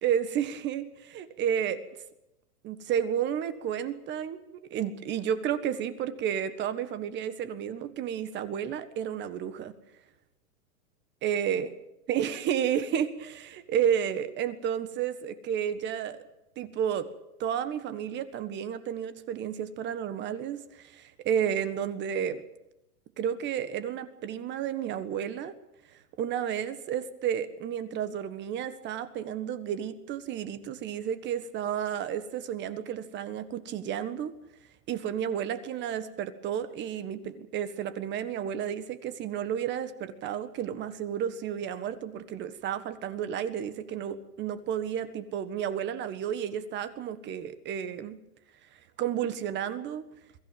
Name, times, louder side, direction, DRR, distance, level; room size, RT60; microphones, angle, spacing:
voice 1, 0.0-1.8 2.6-4.4 4.7-9.7 11.2-11.7 12.1-16.2 16.6-17.1 17.4-22.4 23.2-25.5 26.2-34.3 34.9-48.2 49.0-50.0, right 9 dB, 25° right, 13 dB, 1.5 m, -31 dB
22.5 x 15.0 x 9.1 m, 0.88 s
supercardioid pair, 150°, 44 cm